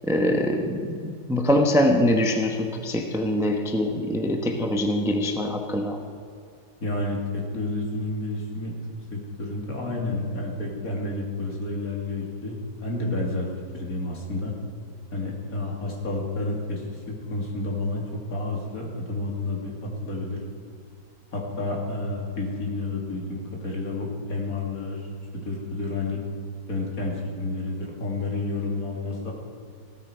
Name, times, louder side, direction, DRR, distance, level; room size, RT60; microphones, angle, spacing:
voice 1, 0.1-6.0, left 1 dB, ahead, 3 dB, 0.7 m, -23 dB
voice 2, 6.8-8.7 9.1-12.6 12.8-13.5 13.7-14.5 15.1-17.0 17.3-18.0 18.3-20.4 21.3-25.0 25.3-26.2 26.7-27.1 27.4-29.3, left 2 dB, 50° left, -1 dB, 3.0 m, -30 dB
16.0 x 13.5 x 5.1 m, 2.3 s
omnidirectional pair, 2.0 m